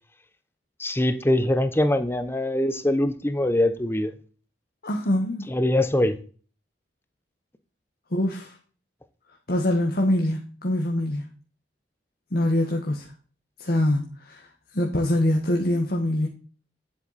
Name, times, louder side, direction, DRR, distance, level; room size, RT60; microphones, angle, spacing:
voice 1, 0.8-4.1 5.5-6.2, left 1 dB, 15° left, 0.9 m, -23 dB
voice 2, 4.8-5.5 8.1-8.5 9.5-11.2 12.3-13.1 13.6-16.3, left 1 dB, 60° left, 1.5 m, -24 dB
10.5 x 8.2 x 4.2 m
head